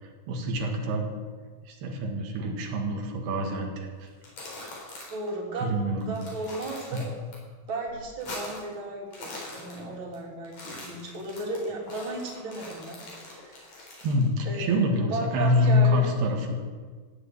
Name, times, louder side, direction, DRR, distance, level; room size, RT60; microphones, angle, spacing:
voice 1, 0.0-1.1 1.7-4.1 5.6-6.2 6.9-7.1 14.0-16.6, left 1 dB, 90° right, 2 dB, 3.8 m, -26 dB
sound 1, 4.1-5.3 5.6-5.7 6.0-7.4 7.7-8.7 9.0-10.2 10.4-14.2, left 2 dB, 50° left, 5.4 m, -42 dB
voice 2, 5.1-5.7 6.1-7.0 7.7-13.1 13.4-13.6 14.5-16.1, right 2 dB, 35° right, -2 dB, 3.5 m, -35 dB
16.0 x 7.9 x 9.1 m, 1.5 s
omnidirectional pair, 4.4 m